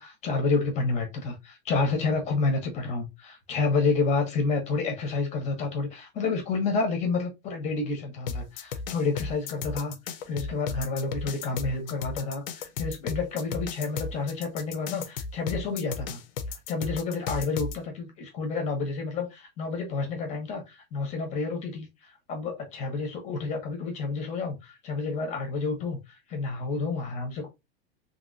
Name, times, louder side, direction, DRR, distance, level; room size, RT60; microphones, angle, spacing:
voice 1, 0.0-9.9 10.3-16.2 16.7-21.9 22.3-26.0 26.3-27.5, left 4 dB, 20° left, 0.8 m, -29 dB
sound 1, 8.3-17.8, left 5 dB, 60° left, 0.7 m, -34 dB
2.9 x 2.8 x 2.6 m
supercardioid pair, 165°, 33 cm